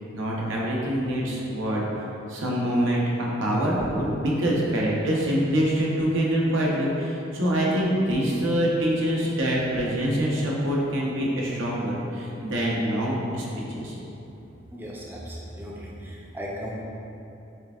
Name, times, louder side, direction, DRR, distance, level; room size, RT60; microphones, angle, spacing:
voice 1, 0.1-2.0 2.3-14.0, equal, 90° right, -4 dB, 0.7 m, -25 dB
voice 2, 14.7-16.8, equal, 10° right, -4 dB, 0.4 m, -36 dB
4.4 x 3.4 x 2.3 m, 2.9 s
head